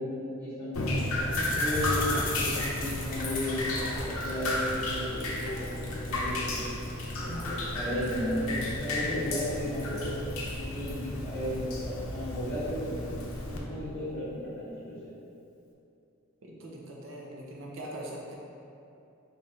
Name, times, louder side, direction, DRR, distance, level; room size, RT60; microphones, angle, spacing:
voice 1, 0.0-6.6 7.2-10.1 10.5-13.2 13.4-15.0, left 1 dB, 10° left, -13 dB, 1.1 m, -34 dB
Drip, 0.7-13.6, left 1 dB, 85° left, 0.6 m, -33 dB
sound 1, 1.3-7.3 7.7-11.5, left 3 dB, 40° left, 0.6 m, -39 dB
voice 2, 16.4-18.3, right 1 dB, 65° right, -3 dB, 0.7 m, -42 dB
3.9 x 2.7 x 4.2 m, 2.7 s
head